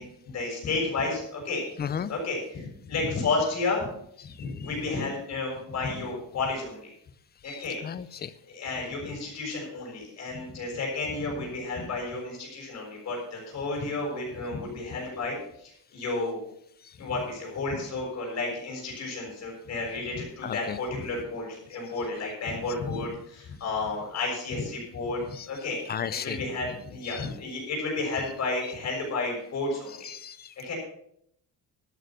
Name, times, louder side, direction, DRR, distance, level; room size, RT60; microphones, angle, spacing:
voice 1, 0.0-1.6 2.1-3.9 4.2-6.9 7.4-7.8 8.1-16.4 16.9-25.8 26.2-30.1 30.6-30.7, left 3 dB, 45° left, -2 dB, 6.6 m, -32 dB
voice 2, 1.8-2.1 7.4-8.3 20.4-20.8 25.3-25.5 25.9-26.4 27.0-27.3 30.0-30.7, left 8 dB, 25° left, 16 dB, 0.4 m, -34 dB
12.5 x 9.5 x 5.9 m, 0.71 s
cardioid pair, 175°, 38 cm